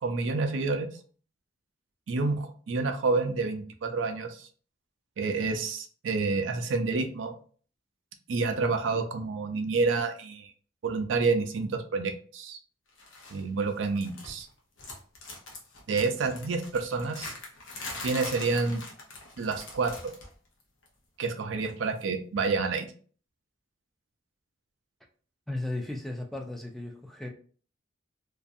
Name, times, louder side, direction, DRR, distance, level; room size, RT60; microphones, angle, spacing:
voice 1, 0.0-0.9 2.1-4.5 5.2-7.3 8.3-10.5 10.8-12.6 13.3-14.5 15.9-17.3 18.0-18.8 19.4-20.1 21.2-22.9, right 4 dB, 75° right, 7 dB, 0.4 m, -29 dB
sound 1, 13.0-13.4 13.7-14.5 14.8-20.3 20.6-20.9 22.0-22.1, left 2 dB, 85° left, 0.7 m, -42 dB
voice 2, 25.5-27.3, left 2 dB, ahead, 2 dB, 0.3 m, -35 dB
2.5 x 2.3 x 2.5 m, 0.43 s
head